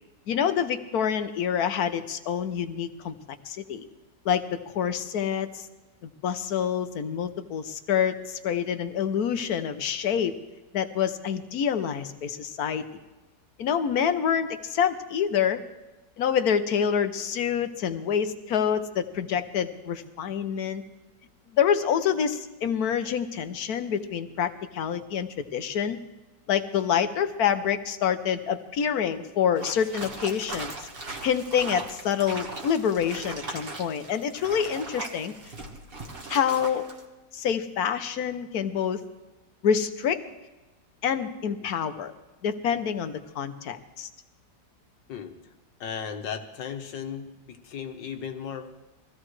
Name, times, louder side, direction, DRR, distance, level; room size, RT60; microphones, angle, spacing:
voice 1, 0.3-3.1 3.4-3.9 4.2-5.7 6.2-10.3 10.7-13.0 13.6-15.6 16.2-20.8 21.5-26.0 26.5-30.9 31.2-35.3 36.3-36.8 37.3-39.0 39.6-40.2 41.0-42.1 42.4-44.1, left 8 dB, 60° left, 9 dB, 1.3 m, -27 dB
sound 1, 29.6-37.0, right 2 dB, 35° right, 1.6 m, -38 dB
voice 2, 45.8-48.7, left 7 dB, 85° left, 5 dB, 1.8 m, -36 dB
22.5 x 15.5 x 3.2 m, 1.1 s
omnidirectional pair, 1.9 m